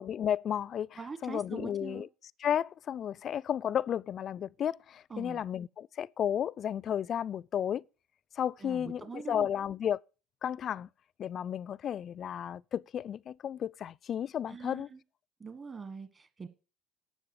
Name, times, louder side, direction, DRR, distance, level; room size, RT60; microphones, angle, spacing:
voice 1, 0.0-2.1 2.4-7.8 8.4-10.0 10.4-10.9 11.2-14.9, left 9 dB, 45° left, 0.4 m, -33 dB
voice 2, 1.0-2.1 5.1-5.4 8.6-9.5 14.5-15.0 15.4-16.5, right 5 dB, 30° right, 1.5 m, -43 dB
11.5 x 7.4 x 4.9 m
hypercardioid pair, 65°, 0 cm